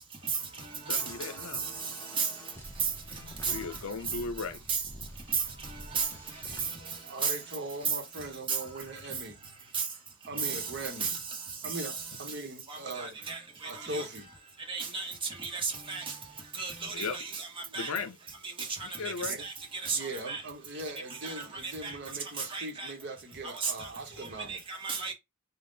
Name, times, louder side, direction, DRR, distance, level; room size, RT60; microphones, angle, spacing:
voice 1, 0.7-1.6 3.2-4.6 16.9-17.2 17.7-18.2 18.8-19.4, left 4 dB, 70° left, 0.6 m, -37 dB
sound 1, 0.9-6.6, equal, 10° left, 0.8 m, -48 dB
voice 2, 6.8-9.4 10.3-11.2 11.6-13.2 13.6-14.3 17.7-17.8 19.3-19.4 19.9-24.6, right 2 dB, 50° right, 1.0 m, -40 dB
voice 3, 13.0-13.4 13.9-14.0 14.7-15.1 15.4-16.0 16.6-17.4 17.7-17.9 19.4-19.5 19.8-20.0 20.3-20.4 21.2-21.3 21.8-21.9 22.5-22.9 23.6-23.7 24.5-25.1, right 5 dB, 25° right, 1.0 m, -32 dB
3.6 x 2.2 x 4.0 m
head